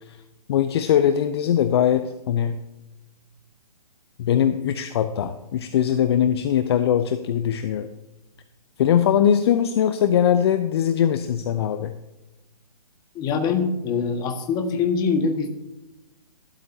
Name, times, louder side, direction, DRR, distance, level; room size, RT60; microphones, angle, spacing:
voice 1, 0.5-2.6 4.2-7.9 8.8-11.9, left 9 dB, 40° left, 10 dB, 0.7 m, -21 dB
voice 2, 13.1-15.5, left 5 dB, 20° left, 5 dB, 1.6 m, -23 dB
14.5 x 12.5 x 2.8 m, 0.99 s
figure-of-eight pair, 135°, 20 cm